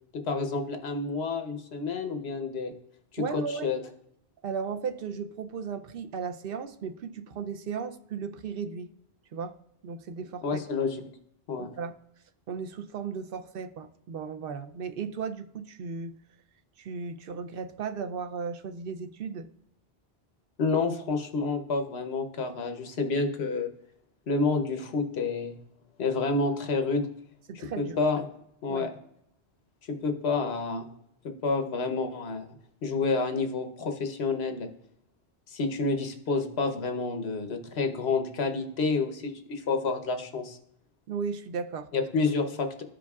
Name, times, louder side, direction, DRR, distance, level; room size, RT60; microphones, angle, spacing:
voice 1, 0.1-2.7 3.1-3.8 10.4-11.0 11.5-11.7 20.6-23.7 24.3-25.6 26.0-27.1 27.8-28.2 28.6-28.9 29.9-30.9 31.4-32.5 32.8-34.7 35.5-40.6 41.9-42.8, left 4 dB, 75° left, 6 dB, 1.1 m, -29 dB
voice 2, 3.2-3.7 4.4-8.9 9.3-9.6 9.8-10.4 11.6-11.9 12.5-16.1 16.8-19.5 27.5-28.0 28.7-28.9 41.1-41.9, right 6 dB, 65° right, 8 dB, 0.7 m, -35 dB
13.5 x 5.1 x 2.3 m, 0.75 s
omnidirectional pair, 1.1 m